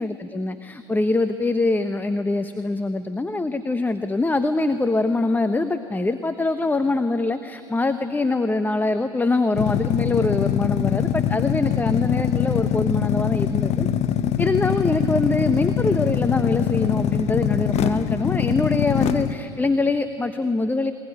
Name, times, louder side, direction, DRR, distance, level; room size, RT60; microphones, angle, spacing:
voice 1, 0.0-13.9 14.4-20.9, left 2 dB, 15° left, 10 dB, 1.1 m, -23 dB
sound 1, 9.5-19.3, left 9 dB, 50° left, 1.2 m, -23 dB
22.0 x 20.5 x 10.0 m, 2.7 s
hypercardioid pair, 80°, 14 cm